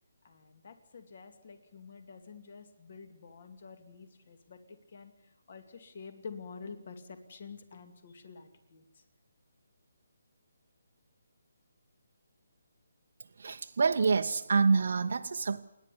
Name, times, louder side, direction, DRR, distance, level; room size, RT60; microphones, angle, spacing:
voice 1, 0.2-8.8, left 5 dB, 40° left, 8 dB, 2.3 m, -48 dB
voice 2, 13.4-15.6, right 4 dB, 50° right, 5 dB, 0.8 m, -27 dB
28.0 x 11.0 x 10.0 m, 0.91 s
hypercardioid pair, 175°, 0 cm